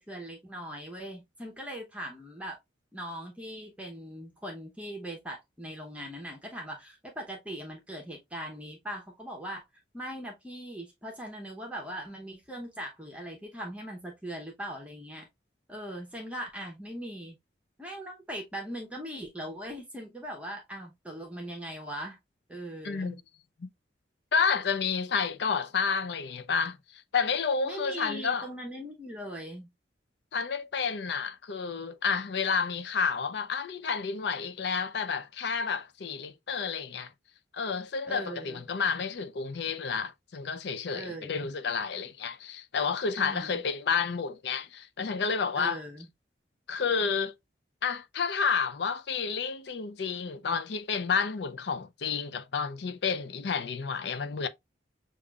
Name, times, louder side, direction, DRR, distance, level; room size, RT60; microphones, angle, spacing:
voice 1, 0.1-2.6 2.9-9.6 9.9-15.3 15.7-17.4 17.8-22.2 22.5-23.2 27.6-29.7 38.0-38.6 40.9-41.5 43.2-43.6 45.5-46.1, equal, 5° right, 0.8 m, -40 dB
voice 2, 22.8-23.1 23.6-23.7 24.3-26.8 27.1-28.5 30.3-37.1 37.5-45.8 46.7-47.3 47.8-54.5, left 5 dB, 65° left, 0.5 m, -30 dB
6.5 x 2.5 x 2.3 m
head